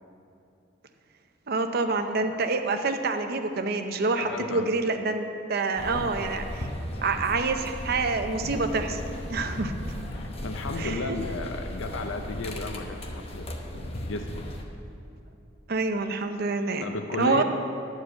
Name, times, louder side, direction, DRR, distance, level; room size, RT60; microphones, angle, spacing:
voice 1, 1.5-6.7 7.0-9.0 9.3-9.9 10.8-11.2 15.7-16.9 17.2-17.4, right 3 dB, 55° right, 7 dB, 0.6 m, -27 dB
voice 2, 4.2-4.7 5.8-6.1 9.4-9.5 10.1-13.5 13.7-14.5 16.8-17.4, left 3 dB, 80° left, 5 dB, 0.6 m, -34 dB
sound 1, 5.8-14.6, equal, 30° left, 0.8 m, -36 dB
11.0 x 4.7 x 7.4 m, 2.7 s
head